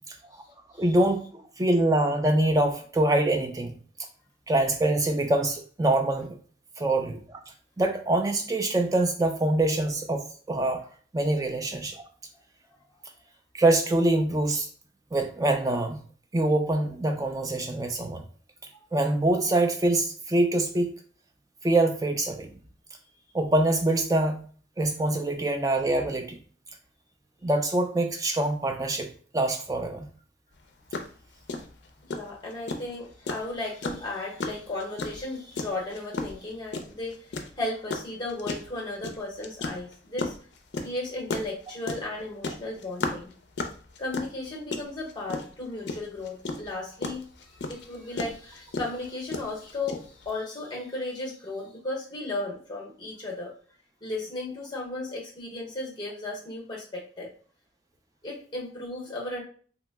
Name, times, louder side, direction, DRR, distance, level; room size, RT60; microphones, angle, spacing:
voice 1, 0.8-1.3 1.6-3.7 4.5-6.4 6.8-7.2 7.8-10.8 11.1-12.0 13.5-14.7 15.1-16.0 16.3-18.2 18.9-21.0 21.6-22.6 23.3-24.4 24.8-26.4 27.4-29.1 29.3-30.1, right 2 dB, 20° right, 5 dB, 0.3 m, -24 dB
sound 1, 30.6-30.7 30.9-31.1 31.5-50.3, left 3 dB, 60° left, 0.4 m, -33 dB
voice 2, 32.1-40.3 40.8-43.3 44.0-53.6 54.0-57.3 58.2-59.4, left 2 dB, 25° left, -2 dB, 0.9 m, -35 dB
2.9 x 2.0 x 3.4 m, 0.44 s
head